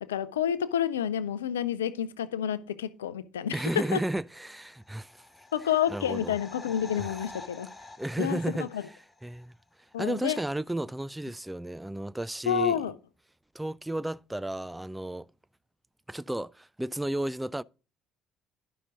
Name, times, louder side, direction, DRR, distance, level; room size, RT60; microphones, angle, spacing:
voice 1, 0.0-4.0 5.5-7.7 8.2-8.8 9.9-10.4 12.5-12.9, left 9 dB, 75° left, 0.5 m, -29 dB
voice 2, 3.5-5.4 5.9-6.4 7.0-7.1 8.0-8.7 9.2-9.6 10.0-12.9 13.5-15.3 16.1-17.6, right 1 dB, 10° right, 0.3 m, -33 dB
sound 1, 4.6-9.4 9.7-9.8, left 3 dB, 20° left, 1.5 m, -48 dB
11.0 x 5.8 x 3.8 m
figure-of-eight pair, 55°, 0 cm